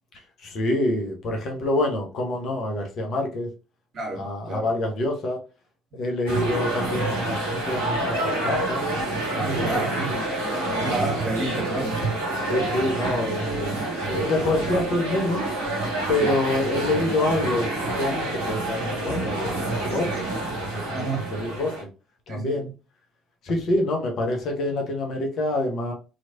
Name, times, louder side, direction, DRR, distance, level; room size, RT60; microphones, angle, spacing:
voice 1, 0.4-3.5 4.2-5.4 5.9-8.8 9.3-10.0 12.5-13.7 14.0-15.5 16.1-20.3 20.6-20.9 21.3-21.8 22.3-22.7 23.4-25.9, left 1 dB, 55° left, 1.1 m, -26 dB
voice 2, 3.9-4.7 9.3-12.8 16.2-16.3 20.9-21.2 22.3-22.7, right 2 dB, 50° right, 1.6 m, -31 dB
sound 1, 6.3-21.8, right 2 dB, 85° right, 1.1 m, -28 dB
3.1 x 3.1 x 2.7 m
figure-of-eight pair, 50°, 0 cm